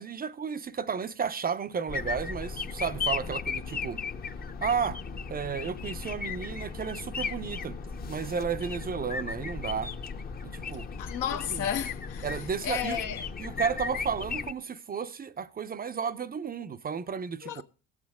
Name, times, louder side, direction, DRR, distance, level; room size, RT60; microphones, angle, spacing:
voice 1, 0.0-4.0 4.6-5.0 5.3-7.8 8.1-9.9 10.5-10.9 11.3-11.7 12.2-13.0 13.4-17.6, right 6 dB, 30° right, 0.6 m, -33 dB
sound 1, 1.9-14.5, left 5 dB, 30° left, 0.8 m, -36 dB
voice 2, 11.0-12.3 12.6-13.3 17.4-17.6, left 10 dB, 70° left, 1.1 m, -32 dB
18.0 x 7.3 x 3.6 m
hypercardioid pair, 70°, 33 cm